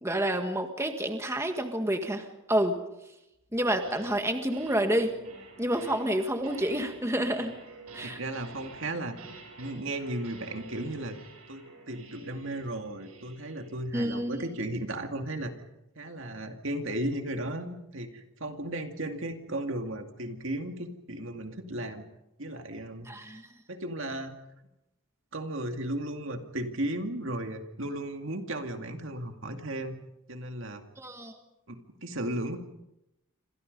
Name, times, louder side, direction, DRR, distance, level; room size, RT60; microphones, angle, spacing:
voice 1, 0.0-2.8 3.5-5.1 5.6-7.5 7.9-8.2 13.9-14.4 23.1-23.4 31.0-31.3, right 1 dB, 15° right, 5 dB, 1.7 m, -29 dB
sound 1, 3.5-4.2 4.5-14.9, right 3 dB, 85° right, 6.6 m, -49 dB
voice 2, 8.0-11.2 11.5-15.5 16.0-22.0 22.4-23.1 23.7-24.4 25.3-30.0 30.3-30.8 31.7-32.6, right 1 dB, 60° right, 5 dB, 2.4 m, -35 dB
28.0 x 26.5 x 5.4 m, 0.89 s
head